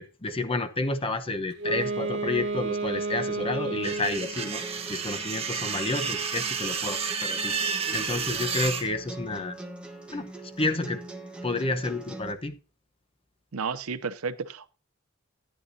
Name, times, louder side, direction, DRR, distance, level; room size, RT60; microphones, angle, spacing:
voice 1, 0.0-9.5 10.1-10.3 10.6-11.0 11.4-12.6, left 2 dB, 25° left, 0.9 m, -30 dB
Wind instrument woodwind instrument, 1.5-4.4, right 3 dB, 60° right, 1.5 m, -31 dB
sound 1, 3.8-8.8, right 6 dB, 30° right, 1.2 m, -31 dB
sound 2, 4.3-12.3, right 2 dB, 5° right, 1.2 m, -42 dB
voice 2, 13.5-14.7, right 5 dB, 85° right, 0.7 m, -32 dB
14.0 x 10.0 x 2.7 m
head